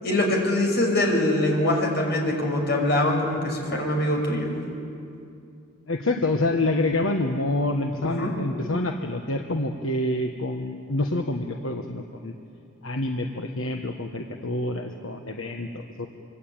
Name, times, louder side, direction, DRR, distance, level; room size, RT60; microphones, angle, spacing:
voice 1, 0.0-4.5 8.0-8.3, left 1 dB, 50° left, 1 dB, 5.7 m, -23 dB
voice 2, 5.9-12.3 12.8-16.1, left 2 dB, 75° left, 4 dB, 1.3 m, -27 dB
25.5 x 25.0 x 8.8 m, 2.5 s
head